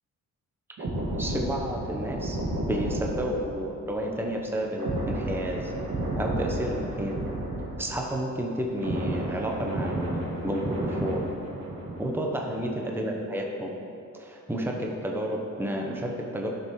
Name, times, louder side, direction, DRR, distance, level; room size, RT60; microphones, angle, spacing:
sound 1, 0.8-8.3 8.5-12.3 12.5-12.8, right 1 dB, 80° right, 2.1 m, -32 dB
voice 1, 1.2-2.4 2.7-5.7 6.2-7.2 7.8-11.2 12.0-13.8 14.2-16.5, right 1 dB, 5° right, 0 dB, 1.0 m, -31 dB
11.5 x 7.0 x 3.2 m, 2.6 s
cardioid pair, 85°, 31 cm